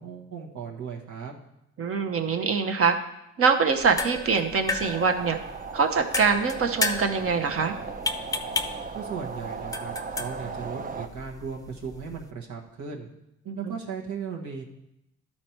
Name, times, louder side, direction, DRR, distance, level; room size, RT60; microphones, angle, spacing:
voice 1, 0.0-1.3 8.9-13.1 13.5-14.6, right 6 dB, 75° right, -1 dB, 1.3 m, -37 dB
voice 2, 1.8-3.0 3.4-5.4 5.7-7.8 13.5-13.7, right 5 dB, 45° right, 6 dB, 0.9 m, -24 dB
sound 1, 3.7-12.3, left 3 dB, 10° left, 0.6 m, -34 dB
sound 2, 4.8-11.1, right 5 dB, 30° right, 0.6 m, -37 dB
12.0 x 4.4 x 4.5 m, 0.86 s
cardioid pair, 90°, 30 cm